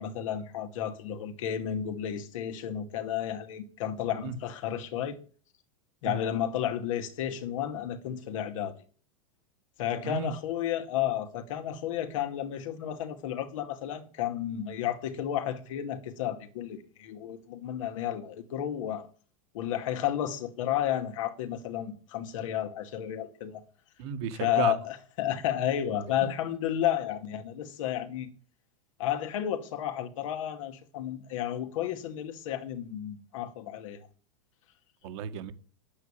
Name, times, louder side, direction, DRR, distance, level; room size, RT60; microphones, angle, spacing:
voice 1, 0.0-5.2 6.0-8.8 9.8-19.1 19.5-23.6 24.4-28.3 29.0-34.1, left 10 dB, 65° left, 2.2 m, -32 dB
voice 2, 24.0-24.7 26.2-26.3 35.0-35.5, right 8 dB, 55° right, 1.8 m, -33 dB
9.8 x 8.4 x 8.8 m
hypercardioid pair, 115°, 18 cm